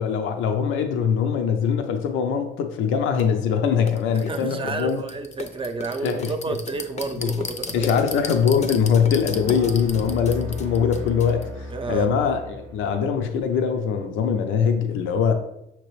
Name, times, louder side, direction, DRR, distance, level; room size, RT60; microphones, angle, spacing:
voice 1, 0.0-5.0 6.0-6.3 7.2-7.3 7.7-15.4, left 7 dB, 85° left, 0.5 m, -22 dB
sound 1, 3.2-3.3 3.9-11.5, left 4 dB, 35° left, 0.5 m, -35 dB
voice 2, 4.1-8.0 11.7-12.2, right 4 dB, 25° right, 0.5 m, -31 dB
sound 2, 5.5-5.7 6.3-13.1, right 1 dB, 80° right, 0.5 m, -38 dB
5.8 x 2.9 x 3.1 m
cardioid pair, 90°, 20 cm